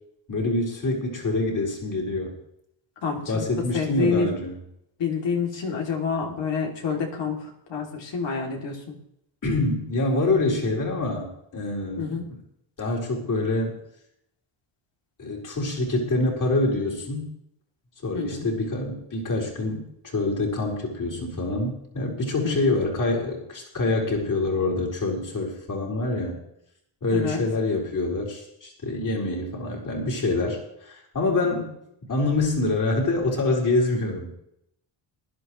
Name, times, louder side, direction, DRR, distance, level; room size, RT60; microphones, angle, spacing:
voice 1, 0.3-2.3 3.3-4.5 9.4-12.2 12.8-13.8 15.2-17.3 18.0-26.4 27.0-31.7 32.1-34.3, left 2 dB, 40° left, -1 dB, 4.4 m, -26 dB
voice 2, 3.0-3.4 3.7-4.4 5.0-9.0 12.0-12.3 18.1-18.5 22.4-22.8 27.1-27.4, left 5 dB, 60° left, 1 dB, 3.2 m, -28 dB
20.0 x 11.5 x 3.2 m, 0.75 s
cardioid pair, 110°, 49 cm